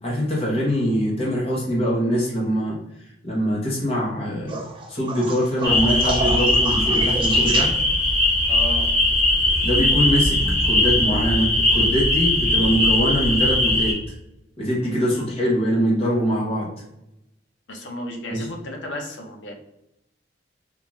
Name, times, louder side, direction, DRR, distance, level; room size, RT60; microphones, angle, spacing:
voice 1, 0.0-2.8 3.2-7.7 9.6-14.0 14.6-16.7 18.3-18.4, equal, 30° left, -4 dB, 0.9 m, -23 dB
sound 1, 4.5-8.2 10.3-10.8 12.5-12.6, right 3 dB, 25° right, 0.4 m, -30 dB
sound 2, 5.6-13.9, left 1 dB, 15° left, 1.1 m, -20 dB
voice 2, 8.5-8.9 17.7-19.5, left 1 dB, 80° left, 1 dB, 0.8 m, -33 dB
3.7 x 2.5 x 2.9 m, 0.86 s
head